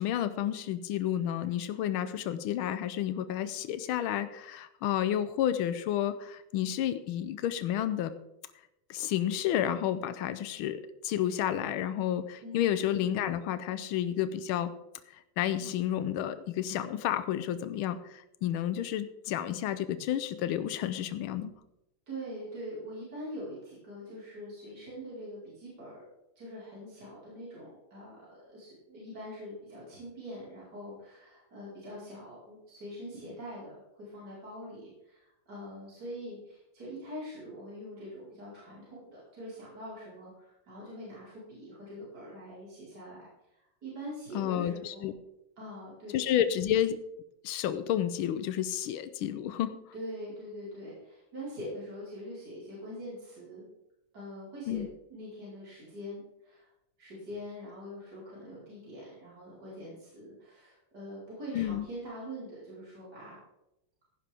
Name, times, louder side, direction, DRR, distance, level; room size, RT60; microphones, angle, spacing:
voice 1, 0.0-8.1 8.9-14.7 15.4-21.5 44.3-45.1 46.1-47.0 47.4-49.8 54.7-54.9 61.5-61.8, left 11 dB, 80° left, 12 dB, 1.6 m, -31 dB
voice 2, 12.4-12.8 22.1-26.0 26.4-45.1 45.6-46.2 49.9-53.7 54.1-56.7 57.0-63.4, equal, 50° right, -7 dB, 5.1 m, -44 dB
15.5 x 11.0 x 3.5 m, 0.87 s
omnidirectional pair, 2.3 m